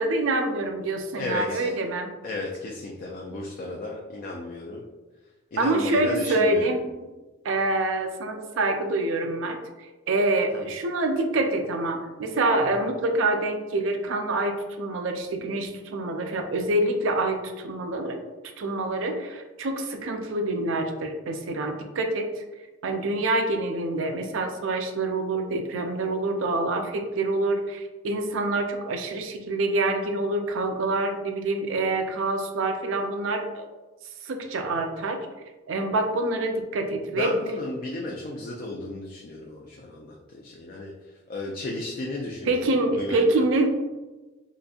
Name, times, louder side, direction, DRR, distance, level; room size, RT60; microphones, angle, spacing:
voice 1, 0.0-2.1 5.6-6.8 7.4-18.2 18.6-22.4 22.8-33.7 34.2-35.2 35.7-37.3 42.5-43.7, right 2 dB, 80° right, 5 dB, 0.4 m, -26 dB
voice 2, 1.1-1.7 2.2-4.8 5.5-6.8 10.5-10.7 37.2-43.4, left 2 dB, 45° left, -1 dB, 0.4 m, -34 dB
3.9 x 2.5 x 2.3 m, 1.2 s
head